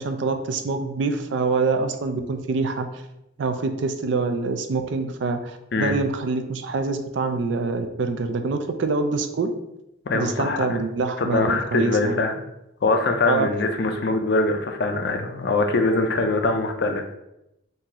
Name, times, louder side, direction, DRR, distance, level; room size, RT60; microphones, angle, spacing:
voice 1, 0.0-2.9 3.4-9.5 10.1-12.2 13.3-13.5, right 4 dB, 65° right, 7 dB, 0.4 m, -25 dB
voice 2, 10.1-10.8 11.2-12.4 12.8-17.0, left 3 dB, 55° left, 5 dB, 0.4 m, -23 dB
2.8 x 2.7 x 3.7 m, 0.86 s
head